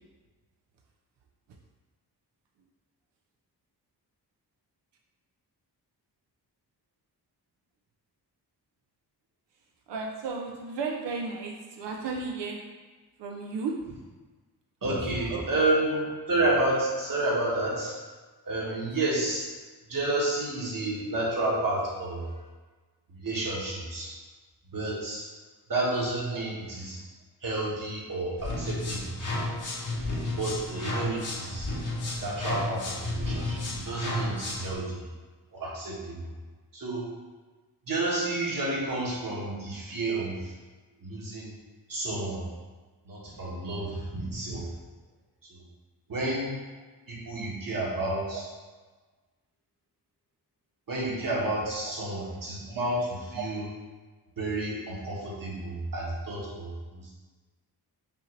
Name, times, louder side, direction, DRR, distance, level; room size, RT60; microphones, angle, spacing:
voice 1, 9.9-12.6 13.2-13.7 14.9-15.6 16.0-16.1 18.6-18.8 26.3-26.4 48.3-48.4 51.8-51.9 53.4-53.5, right 4 dB, 90° right, 1 dB, 0.6 m, -35 dB
voice 2, 14.8-18.0 18.4-19.4 19.9-22.2 23.1-24.2 24.7-25.3 25.7-27.0 27.4-29.1 29.9-31.7 32.0-35.0 35.5-36.2 36.7-37.1 37.9-40.4 41.0-41.5 41.9-42.4 43.0-44.7 46.1-46.5 47.1-48.4 50.9-53.7 54.4-57.1, right 2 dB, 55° right, -5 dB, 1.3 m, -30 dB
sound 1, 28.4-34.7, left 2 dB, 50° left, 1.1 m, -32 dB
5.4 x 2.6 x 3.1 m, 1.3 s
cardioid pair, 70°, 41 cm